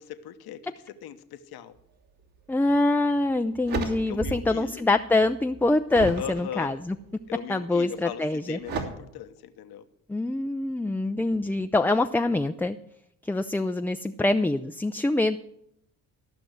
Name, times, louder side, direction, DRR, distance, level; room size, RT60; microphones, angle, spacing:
voice 1, 0.0-1.7 4.1-4.8 6.2-6.8 7.3-9.8, left 10 dB, 70° left, 8 dB, 1.0 m, -39 dB
voice 2, 2.5-7.0 7.5-8.6 10.1-12.8 13.2-15.4, left 2 dB, 5° left, 7 dB, 0.4 m, -25 dB
sound 1, 2.7-2.8 3.3-4.6 4.9-6.3 6.9-7.4 8.6-8.8, right 4 dB, 65° right, 3.0 m, -33 dB
14.0 x 6.0 x 7.9 m, 0.75 s
supercardioid pair, 70°, 39 cm